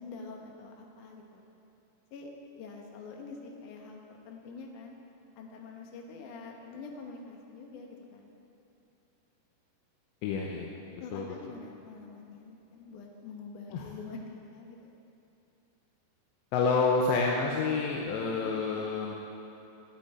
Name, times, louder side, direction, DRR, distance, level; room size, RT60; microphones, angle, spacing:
voice 1, 0.0-1.4 2.1-2.3 2.6-5.0 5.4-8.3 11.0-14.9 18.4-18.5, left 4 dB, 70° left, 1 dB, 2.0 m, -46 dB
voice 2, 10.2-10.8 11.1-11.2 13.7-13.9 16.5-19.2, left 4 dB, 85° left, -1 dB, 3.1 m, -28 dB
19.5 x 9.0 x 4.5 m, 2.8 s
omnidirectional pair, 5.1 m